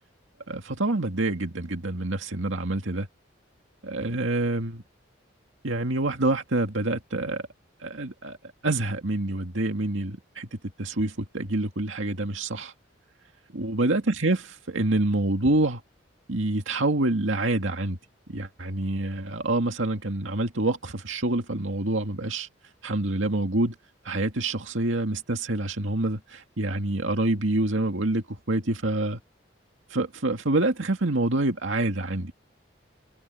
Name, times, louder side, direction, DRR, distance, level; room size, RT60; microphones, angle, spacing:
voice 1, 0.5-3.1 3.8-4.8 5.6-7.4 7.8-8.4 8.6-12.7 13.5-15.8 16.3-18.0 18.3-22.5 22.8-23.7 24.0-29.2 29.9-32.3, right 2 dB, 80° right, 2.2 m, -27 dB
head